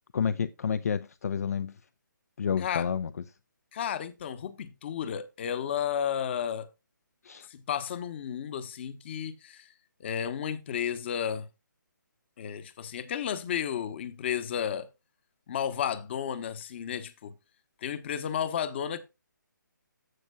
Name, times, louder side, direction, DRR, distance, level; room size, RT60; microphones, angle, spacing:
voice 1, 0.1-1.8 2.4-3.1 7.2-7.5, left 7 dB, 50° left, 0.5 m, -30 dB
voice 2, 3.7-6.7 7.5-9.7 10.0-11.5 12.4-14.9 15.5-17.3 17.8-19.0, left 9 dB, 35° left, 1.0 m, -32 dB
14.5 x 6.0 x 2.3 m
figure-of-eight pair, 145°, 11 cm